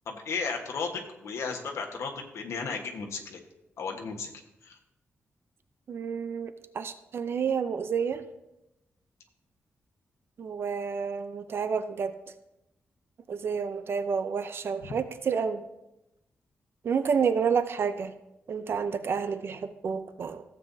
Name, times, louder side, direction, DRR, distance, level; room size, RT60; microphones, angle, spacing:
voice 1, 0.1-3.4 3.8-4.3 4.6-4.8 14.8-14.9, left 5 dB, 75° left, 1 dB, 1.2 m, -34 dB
voice 2, 5.9-8.2 10.4-12.2 13.3-15.6 16.8-18.1 18.5-20.4, right 6 dB, 55° right, 10 dB, 0.5 m, -29 dB
15.5 x 7.6 x 2.7 m, 0.91 s
wide cardioid pair, 165°, 5 cm